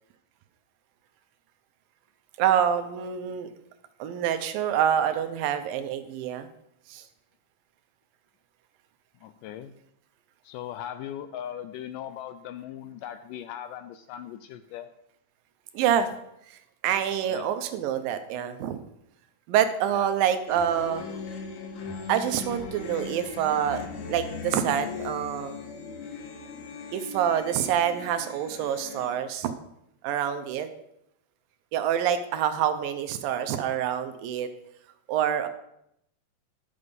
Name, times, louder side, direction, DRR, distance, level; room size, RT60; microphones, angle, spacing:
voice 1, 2.4-3.5 4.0-6.5 6.9-7.0 15.7-16.1 16.5-18.8 19.5-21.0 22.1-23.8 24.1-25.6 26.9-29.5 30.0-30.7 31.7-34.5 35.1-35.5, right 9 dB, 80° right, 9 dB, 2.4 m, -26 dB
voice 2, 9.2-9.7 10.4-14.9 17.3-17.6 19.9-20.2, left 10 dB, 80° left, 10 dB, 1.9 m, -39 dB
sound 1, 20.5-29.1, left 5 dB, 65° left, 2.4 m, -39 dB
11.0 x 6.8 x 5.2 m, 0.78 s
omnidirectional pair, 4.1 m